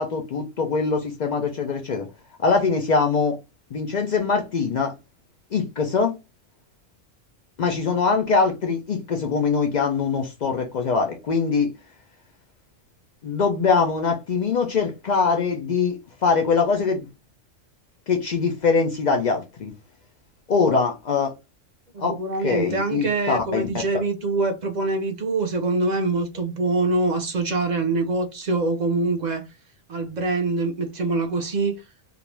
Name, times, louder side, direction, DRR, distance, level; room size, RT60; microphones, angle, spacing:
voice 1, 0.0-2.1 2.4-3.4 3.7-4.9 5.5-6.2 7.6-11.7 13.2-17.1 18.1-19.7 20.5-21.3 22.0-22.2 22.4-23.7, left 5 dB, 70° left, 0.4 m, -22 dB
voice 2, 21.9-29.5 29.9-31.8, right 3 dB, 55° right, 0.5 m, -24 dB
2.4 x 2.0 x 3.1 m
omnidirectional pair, 1.3 m